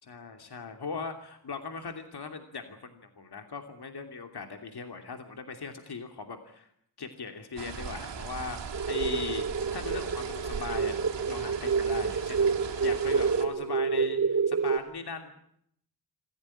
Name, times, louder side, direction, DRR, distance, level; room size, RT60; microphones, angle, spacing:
voice 1, 0.1-6.7 7.0-11.0 11.3-12.5 12.8-15.4, left 5 dB, 65° left, 5 dB, 2.9 m, -39 dB
sound 1, 7.6-13.4, right 6 dB, 80° right, 3.7 m, -39 dB
sound 2, 8.7-14.8, right 5 dB, 45° right, 2.7 m, -28 dB
26.0 x 16.0 x 9.9 m, 0.70 s
wide cardioid pair, 90°, 42 cm